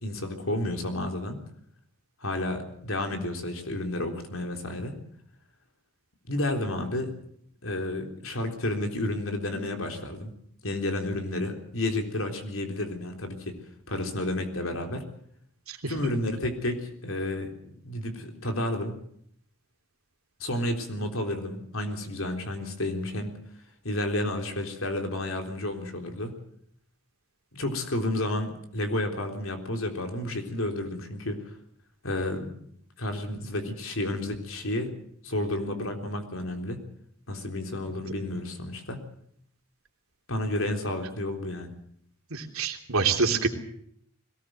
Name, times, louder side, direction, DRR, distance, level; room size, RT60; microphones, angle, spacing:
voice 1, 0.0-1.4 2.2-5.0 6.2-7.2 7.6-10.3 10.6-13.6 13.9-15.0 15.9-19.0 20.4-23.3 23.8-26.3 27.5-31.4 32.0-32.7 33.0-34.9 35.2-36.8 37.3-39.0 40.3-41.7, left 1 dB, 70° left, 5 dB, 3.8 m, -31 dB
voice 2, 42.3-43.5, right 4 dB, 80° right, 4 dB, 3.2 m, -26 dB
21.5 x 18.5 x 7.8 m, 0.66 s
head